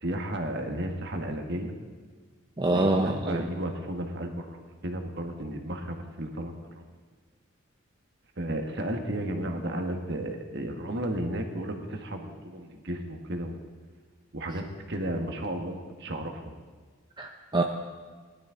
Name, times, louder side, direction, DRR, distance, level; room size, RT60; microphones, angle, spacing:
voice 1, 0.0-1.7 2.7-6.8 8.4-13.6 14.3-16.5, right 1 dB, 50° right, 4 dB, 1.5 m, -33 dB
voice 2, 2.6-3.4 17.2-17.6, right 2 dB, 20° right, 3 dB, 0.6 m, -25 dB
19.0 x 12.0 x 3.9 m, 1.5 s
head